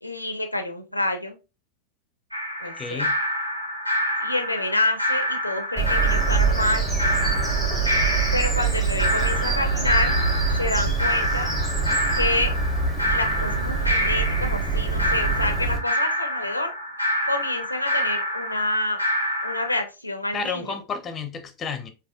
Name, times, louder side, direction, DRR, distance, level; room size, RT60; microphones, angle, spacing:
voice 1, 0.0-1.4 2.6-3.1 4.2-6.9 8.3-10.1 10.6-11.5 12.1-12.5 13.1-16.7 17.2-19.0 19.4-20.8, left 2 dB, 85° left, 0.5 m, -27 dB
sound 1, 2.3-19.8, left 1 dB, 85° right, 0.6 m, -27 dB
voice 2, 2.8-3.2 20.3-21.9, left 5 dB, 20° left, 0.5 m, -31 dB
Bird vocalization bird call bird song, 5.8-15.8, right 4 dB, 20° right, 1.0 m, -25 dB
4.1 x 2.6 x 2.2 m
figure-of-eight pair, 90°, 0 cm